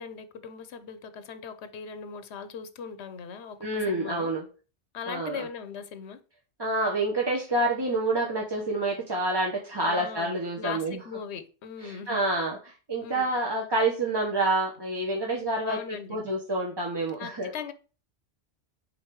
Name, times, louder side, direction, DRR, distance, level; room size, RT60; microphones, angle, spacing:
voice 1, 0.0-4.3 4.9-6.2 9.8-12.2 13.0-13.2 15.6-16.2 17.2-17.7, left 6 dB, 80° left, 1.0 m, -39 dB
voice 2, 3.6-4.4 5.1-5.4 6.6-11.0 11.8-15.8 16.1-17.5, right 2 dB, 25° right, 0.8 m, -28 dB
5.0 x 4.1 x 4.6 m
omnidirectional pair, 1.1 m